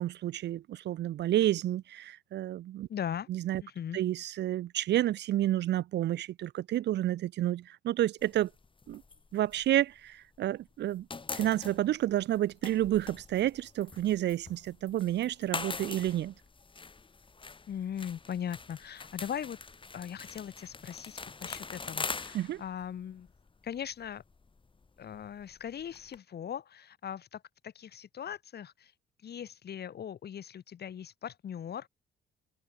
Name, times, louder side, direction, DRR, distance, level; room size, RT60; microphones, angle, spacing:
voice 1, 0.0-2.9 3.3-3.6 3.9-8.5 8.9-9.0 9.3-11.1 11.3-16.3 22.3-22.6, right 13 dB, 60° right, 0.5 m, -30 dB
voice 2, 2.9-3.3 3.6-4.0 17.7-19.6 19.9-23.3 23.6-24.2 25.0-28.9 29.2-31.9, left 9 dB, 55° left, 1.6 m, -39 dB
sound 1, 8.2-10.5 10.7-26.2, left 4 dB, 25° left, 1.8 m, -43 dB
cardioid pair, 90°, 20 cm